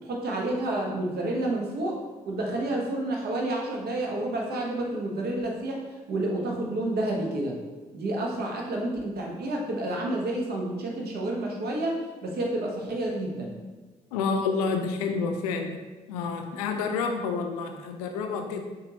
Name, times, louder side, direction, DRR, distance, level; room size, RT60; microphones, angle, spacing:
voice 1, 0.0-2.0 2.3-5.8 6.1-7.5 7.9-13.5, right 1 dB, 55° right, 0 dB, 1.1 m, -29 dB
voice 2, 14.1-15.8 16.1-18.6, left 5 dB, 75° left, 5 dB, 0.4 m, -29 dB
6.8 x 2.7 x 2.9 m, 1.3 s
figure-of-eight pair, 40°, 19 cm